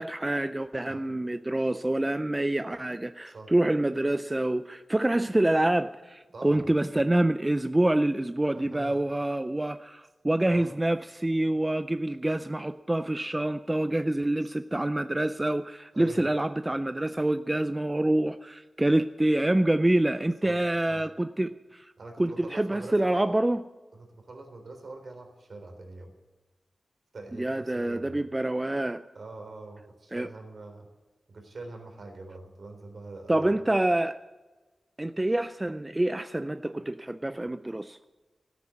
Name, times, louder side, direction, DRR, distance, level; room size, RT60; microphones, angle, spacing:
voice 1, 0.0-21.9 22.2-23.6 27.4-29.0 30.1-30.3 33.3-34.2 35.0-38.0, right 1 dB, 15° right, 11 dB, 0.4 m, -26 dB
voice 2, 6.3-6.6 8.5-9.0 10.5-10.7 14.4-14.5 15.9-16.3 20.4-20.6 20.9-21.0 22.0-23.4 23.9-26.1 27.1-28.2 29.1-30.9 31.3-33.5, right 3 dB, 65° right, 4 dB, 3.4 m, -44 dB
13.0 x 10.0 x 8.5 m, 1.2 s
wide cardioid pair, 95°, 0 cm